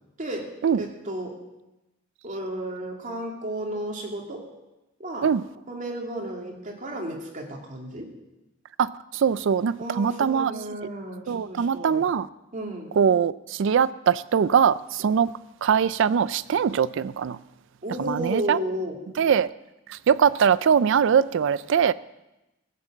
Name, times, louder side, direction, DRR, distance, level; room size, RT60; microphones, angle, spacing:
voice 1, 0.8-1.4 2.2-4.4 5.0-5.3 5.7-8.1 9.8-12.0 12.5-12.9 17.8-19.0, right 1 dB, 40° right, 0 dB, 2.6 m, -33 dB
voice 2, 8.8-10.5 11.3-12.3 13.0-15.3 15.6-17.4 18.0-18.6 19.2-19.5 19.9-21.9, right 7 dB, 65° right, 17 dB, 0.4 m, -22 dB
16.0 x 7.5 x 7.4 m, 0.97 s
head